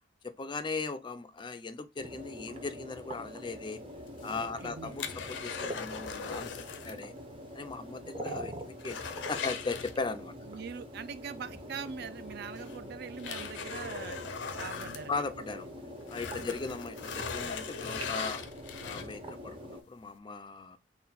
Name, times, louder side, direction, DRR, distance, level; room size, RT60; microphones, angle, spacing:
voice 1, 0.2-3.8 4.2-6.5 6.8-7.1 7.5-10.3 15.1-15.7 16.1-18.4 18.8-20.8, left 4 dB, 25° left, 0.4 m, -38 dB
sound 1, 2.0-19.8, equal, 30° right, 0.7 m, -44 dB
sound 2, 4.1-7.1 7.3-7.4 7.9-8.0 8.4-10.4 11.8-11.9 12.6-15.7 16.0-19.3 19.9-20.0, left 6 dB, 75° left, 0.6 m, -39 dB
voice 2, 4.3-4.9 8.0-8.4 10.4-15.5 16.5-16.8, right 6 dB, 60° right, 0.4 m, -43 dB
3.9 x 2.2 x 4.0 m
head